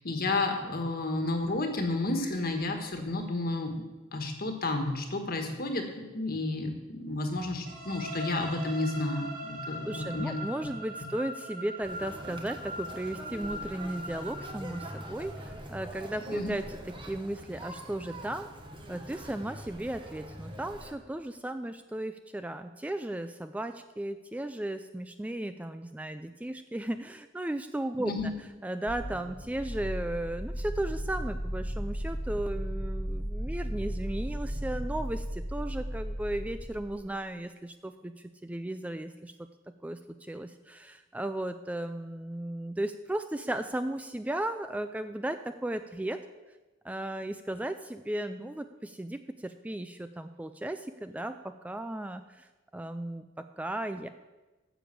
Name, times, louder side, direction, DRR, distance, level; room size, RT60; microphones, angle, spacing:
voice 1, 0.0-3.7 4.1-10.3 16.3-16.5 28.0-28.3, left 2 dB, 50° left, 4 dB, 1.6 m, -31 dB
sound 1, 7.7-15.5, equal, 45° right, 2.7 m, -41 dB
voice 2, 9.8-18.5 18.9-28.3 28.6-39.3 39.8-46.2 46.8-52.5 52.7-54.1, right 1 dB, 5° right, 9 dB, 0.3 m, -35 dB
Conversation, 11.8-20.9, right 1 dB, 25° right, 1.2 m, -44 dB
sound 2, 28.9-37.1, equal, 30° left, 1.6 m, -35 dB
9.7 x 7.0 x 7.6 m, 1.2 s
head